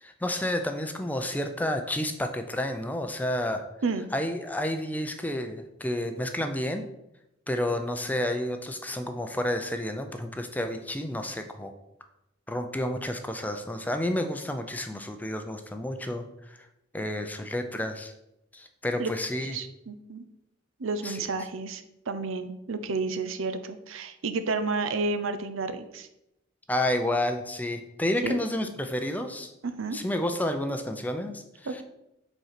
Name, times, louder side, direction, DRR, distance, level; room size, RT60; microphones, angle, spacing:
voice 1, 0.0-3.6 4.1-6.8 7.5-11.7 12.5-16.6 16.9-18.1 18.5-19.6 21.0-21.2 26.7-29.5 29.9-31.8, left 1 dB, 10° left, 6 dB, 0.5 m, -30 dB
voice 2, 19.5-20.2 20.8-26.1 28.2-28.4 29.6-30.0 31.7-31.8, right 3 dB, 80° right, 9 dB, 0.6 m, -31 dB
5.5 x 4.4 x 5.8 m, 0.87 s
head